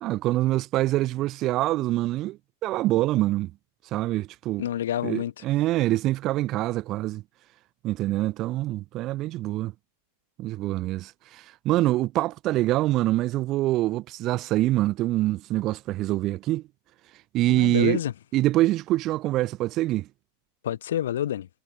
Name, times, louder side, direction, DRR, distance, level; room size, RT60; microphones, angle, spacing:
voice 1, 0.0-3.5 3.9-4.6 5.0-7.2 7.8-9.7 10.4-16.6 17.3-18.0 18.3-20.1, right 16 dB, 35° right, 0.8 m, -25 dB
voice 2, 4.6-5.4 17.5-18.1 20.6-21.5, left 11 dB, 60° left, 0.8 m, -28 dB
figure-of-eight pair, 90°, 0 cm